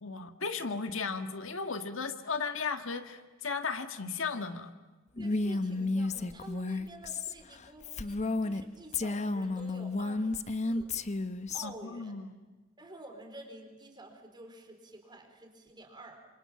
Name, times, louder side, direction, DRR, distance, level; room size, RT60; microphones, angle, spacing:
voice 1, 0.0-4.7 11.6-12.3, left 5 dB, 70° left, 8 dB, 1.6 m, -35 dB
Female speech woman speaking, 5.2-8.6 8.9-11.6, left 3 dB, 35° left, 0.9 m, -32 dB
voice 2, 5.2-10.9 11.5-12.1 12.8-16.3, right 2 dB, 20° right, 5 dB, 4.2 m, -49 dB
28.0 x 26.5 x 7.4 m, 1.2 s
head